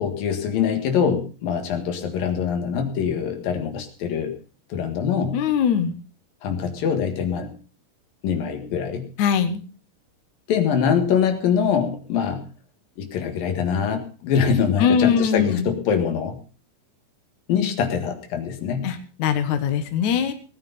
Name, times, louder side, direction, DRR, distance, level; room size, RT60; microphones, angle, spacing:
voice 1, 0.0-4.3 4.7-5.4 6.4-7.5 8.2-9.1 10.5-12.4 13.0-16.4 17.5-18.9, left 7 dB, 85° left, 6 dB, 3.6 m, -23 dB
voice 2, 5.3-5.9 9.2-9.6 14.8-15.6 18.8-20.3, left 7 dB, 65° left, 7 dB, 2.6 m, -21 dB
18.5 x 9.6 x 5.5 m, 0.37 s
omnidirectional pair, 4.0 m